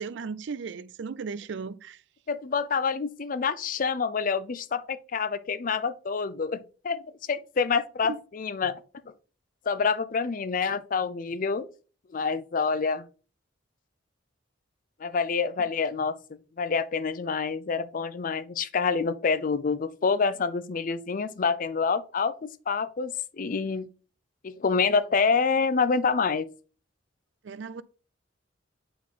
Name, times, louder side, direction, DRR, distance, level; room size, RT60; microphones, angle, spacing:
voice 1, 0.0-2.0 8.1-8.2 27.4-27.8, right 5 dB, 65° right, 0.4 m, -36 dB
voice 2, 2.3-7.0 7.3-8.8 9.7-11.7 12.1-13.1 15.0-16.2 16.6-23.9 24.4-26.5, left 5 dB, 45° left, 0.5 m, -27 dB
8.4 x 4.3 x 3.7 m
head